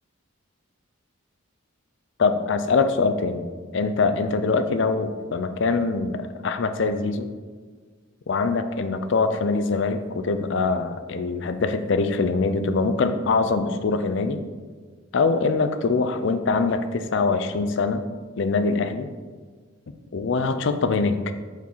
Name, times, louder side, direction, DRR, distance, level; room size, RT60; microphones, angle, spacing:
voice 1, 2.2-3.4 3.7-7.3 8.3-14.4 15.1-18.0 18.4-19.1 20.1-21.2, left 4 dB, 55° left, 10 dB, 0.4 m, -23 dB
4.6 x 4.6 x 5.4 m, 1.5 s
head